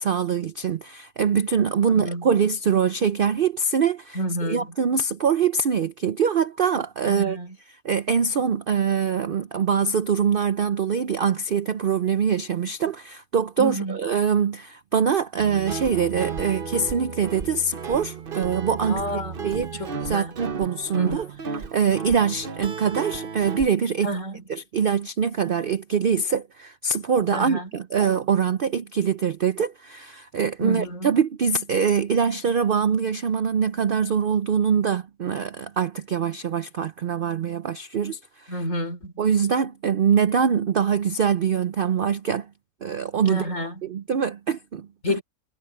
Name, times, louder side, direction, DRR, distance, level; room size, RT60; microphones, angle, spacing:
voice 1, 0.0-4.2 4.5-7.4 7.8-19.0 19.4-19.8 20.1-21.3 21.7-24.1 24.5-38.6 39.2-42.5 42.8-43.4 43.8-45.2, right 6 dB, 65° right, 0.5 m, -23 dB
voice 2, 1.9-2.3 4.1-4.7 7.1-7.6 13.6-14.0 18.8-20.3 20.9-21.3 24.0-24.4 27.3-27.7 30.6-31.1 38.5-39.1 43.3-43.8 45.0-45.2, equal, 50° left, 4.8 m, -30 dB
Guitar, 15.4-23.7, right 5 dB, 40° right, 1.0 m, -33 dB
omnidirectional pair, 1.7 m